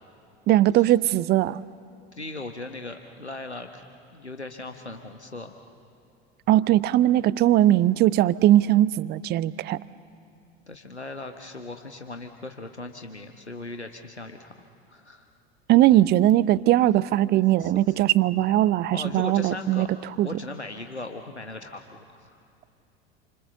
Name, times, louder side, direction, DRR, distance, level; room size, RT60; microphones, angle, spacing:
voice 1, 0.5-1.6 6.5-9.8 15.7-19.9 20.2-20.3, right 14 dB, 30° right, 19 dB, 0.6 m, -20 dB
voice 2, 2.1-3.8 4.1-5.5 10.7-14.6 14.9-15.3 17.6-17.9 18.9-19.9 20.2-22.4, left 2 dB, 90° left, 6 dB, 1.2 m, -38 dB
29.0 x 25.0 x 6.9 m, 2.6 s
figure-of-eight pair, 75°, 32 cm